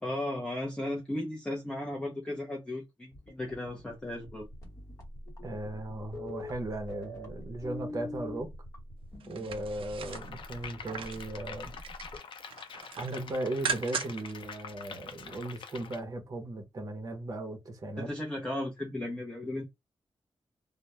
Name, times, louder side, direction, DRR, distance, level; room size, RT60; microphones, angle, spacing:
voice 1, 0.0-4.5 18.0-19.6, left 1 dB, 10° left, 0.5 m, -35 dB
sound 1, 3.1-12.2, left 1 dB, 35° left, 1.0 m, -44 dB
voice 2, 5.4-8.5 9.3-11.7 13.0-18.1, right 2 dB, 40° right, 0.7 m, -37 dB
sound 2, 9.2-11.3 11.7-12.2 12.5-14.3 14.7-14.8, right 6 dB, 80° right, 0.4 m, -38 dB
sound 3, 10.1-16.0, left 6 dB, 70° left, 0.5 m, -45 dB
2.2 x 2.0 x 2.8 m
wide cardioid pair, 155°, 9 cm